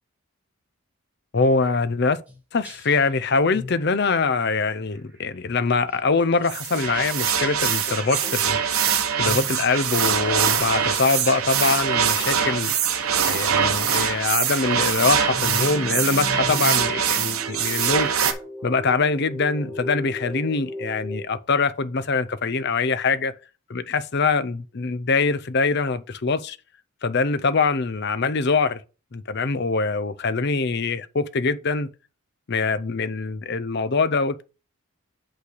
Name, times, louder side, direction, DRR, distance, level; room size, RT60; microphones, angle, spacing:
voice 1, 1.3-2.2 2.5-8.9 9.2-12.7 13.2-18.1 18.6-23.3 23.7-26.6 27.0-28.8 29.1-31.9 32.5-34.4, left 4 dB, 50° left, 0.6 m, -23 dB
sound 1, 2.3-2.4 2.6-3.1 3.5-3.8 4.3-4.5 4.9-5.2 5.9-13.9 15.3-21.3, left 1 dB, 5° right, 1.4 m, -37 dB
sound 2, 6.4-18.3, right 8 dB, 70° right, 1.0 m, -23 dB
8.3 x 3.3 x 6.3 m
head